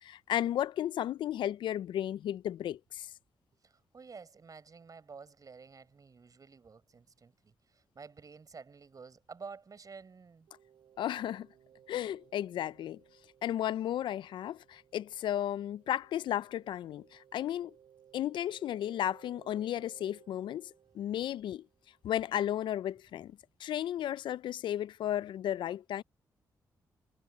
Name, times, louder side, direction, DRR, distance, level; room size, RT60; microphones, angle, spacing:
voice 1, 0.0-3.1 11.0-11.5 11.9-13.0 13.4-17.7 18.1-20.7 20.9-21.6 22.0-26.0, left 11 dB, 75° left, 0.4 m, -34 dB
voice 2, 3.6-10.5, right 5 dB, 45° right, 4.6 m, -51 dB
sound 1, 10.5-22.1, right 9 dB, 75° right, 4.4 m, -62 dB
supercardioid pair, 55°, 8 cm